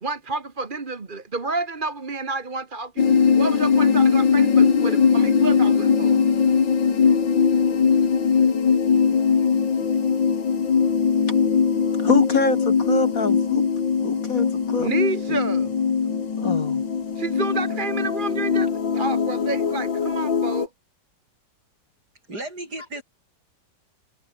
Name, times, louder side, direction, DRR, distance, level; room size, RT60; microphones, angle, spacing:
voice 1, 0.0-3.0 3.4-6.2 14.8-15.7 17.2-20.7, right 3 dB, 30° right, 1.6 m, -30 dB
sound 1, 3.0-20.7, left 6 dB, 85° left, 3.0 m, -20 dB
voice 2, 12.0-13.6 14.0-14.9 15.3-15.4 16.4-16.8, left 4 dB, 50° left, 2.7 m, -25 dB
voice 3, 22.3-23.0, right 2 dB, 60° right, 8.6 m, -34 dB
omnidirectional pair, 2.0 m